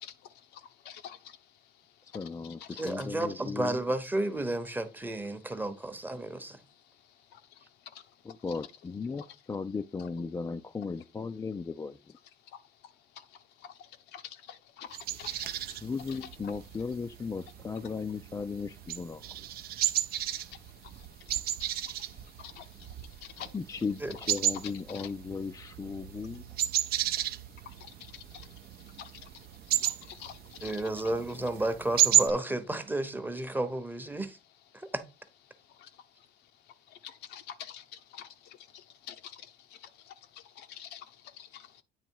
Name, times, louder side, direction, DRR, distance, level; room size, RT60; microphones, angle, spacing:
voice 1, 0.9-1.2 2.8-2.9 8.5-8.6 14.1-14.2 14.8-14.9 15.2-15.5 16.1-16.3 22.6-22.7 23.4-23.5 24.9-25.1 29.0-29.1 29.8-29.9 30.2-30.7 37.3-37.8 38.1-38.2 39.1-39.2 40.6-41.0 41.4-41.8, left 9 dB, 85° left, 0.8 m, -45 dB
voice 2, 2.0-3.8 8.2-12.2 15.8-19.3 23.5-26.6, left 5 dB, 20° left, 0.3 m, -36 dB
voice 3, 2.8-6.6 24.0-24.1 30.6-34.4 34.7-35.0, right 1 dB, 10° right, 0.8 m, -32 dB
sound 1, 14.9-32.3, right 12 dB, 65° right, 0.6 m, -33 dB
8.9 x 3.1 x 4.6 m
cardioid pair, 110°, 17 cm